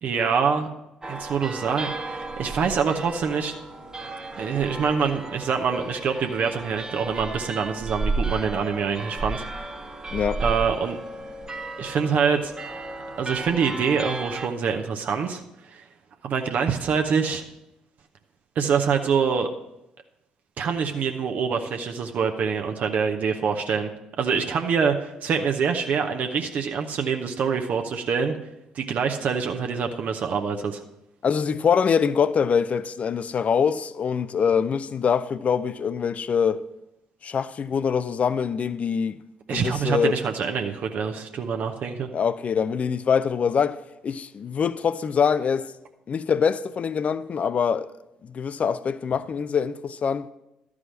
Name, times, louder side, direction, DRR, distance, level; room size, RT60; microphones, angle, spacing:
voice 1, 0.0-0.7 1.1-3.5 4.4-9.7 10.4-11.0 11.8-12.5 13.2-15.4 15.7-15.8 16.2-17.4 18.6-19.5 20.6-23.9 24.2-28.4 28.7-30.8 39.5-42.1, right 6 dB, 55° right, 0.8 m, -25 dB
sound 1, 1.0-14.5, right 2 dB, 20° right, 1.2 m, -33 dB
voice 2, 10.1-10.4 31.2-36.6 37.2-39.2 39.5-40.2 42.1-43.8 44.0-45.7 46.1-47.9 48.2-50.2, left 6 dB, 45° left, 0.5 m, -24 dB
12.0 x 4.9 x 6.3 m
figure-of-eight pair, 45°, 3 cm